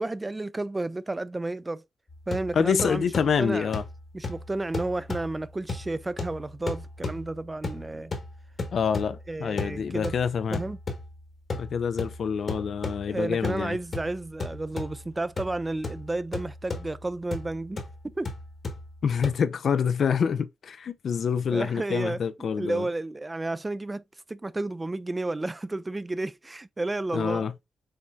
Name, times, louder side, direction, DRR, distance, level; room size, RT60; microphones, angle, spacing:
voice 1, 0.0-1.8 2.3-3.1 3.4-3.7 4.1-8.1 9.3-10.1 10.5-10.8 13.1-18.3 21.5-24.0 24.3-27.5, right 2 dB, 25° right, 0.4 m, -32 dB
sound 1, 2.1-19.3, left 3 dB, 50° left, 1.3 m, -37 dB
voice 2, 2.5-3.8 8.7-10.6 11.5-13.8 19.0-22.9 27.1-27.5, left 6 dB, 65° left, 0.4 m, -26 dB
5.7 x 3.1 x 2.4 m
supercardioid pair, 55°, 0 cm